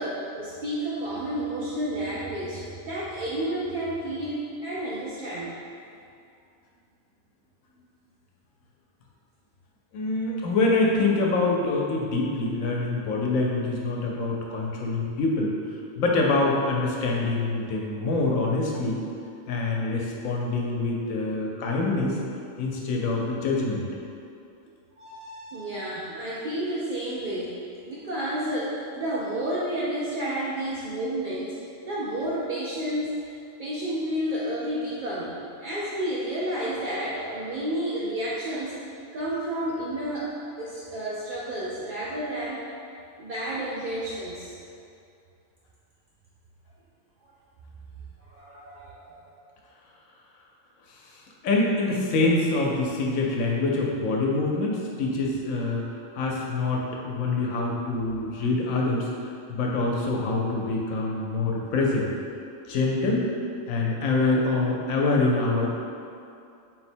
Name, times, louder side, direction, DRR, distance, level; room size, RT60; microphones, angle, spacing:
voice 1, 0.0-5.5 25.0-27.5 27.8-35.3 35.6-38.8 39.1-40.3 40.6-42.7 43.2-44.6 47.2-47.3 48.2-49.4, right 1 dB, 65° right, -8 dB, 0.4 m, -31 dB
voice 2, 9.9-15.5 16.0-19.0 19.5-22.2 22.6-23.9 51.4-55.9 56.1-62.1 62.7-63.3 63.7-65.7, left 3 dB, 85° left, -2 dB, 1.0 m, -25 dB
4.0 x 2.1 x 4.3 m, 2.5 s
omnidirectional pair, 1.4 m